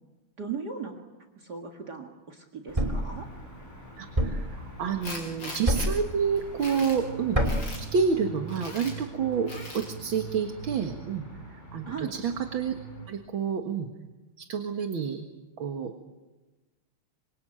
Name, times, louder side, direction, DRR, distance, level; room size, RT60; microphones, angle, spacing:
voice 1, 0.4-1.0 1.4-3.3 11.9-12.1, right 5 dB, 50° right, 3 dB, 2.5 m, -37 dB
sound 1, 2.7-13.1, right 3 dB, 20° left, 5.3 m, -44 dB
Thump thud, 2.7-3.1 4.2-4.5 5.7-6.1 7.3-7.7, equal, 15° right, 2.5 m, -25 dB
voice 2, 4.0-7.4 7.8-12.8 13.1-13.9 14.4-15.2 15.6-15.9, right 6 dB, 65° right, 5 dB, 2.3 m, -29 dB
Tools, 5.0-5.9 6.4-7.0 7.4-7.8 8.5-8.9 9.5-9.9, left 2 dB, 55° left, 6.1 m, -40 dB
26.0 x 25.5 x 9.0 m, 1.1 s
omnidirectional pair, 2.4 m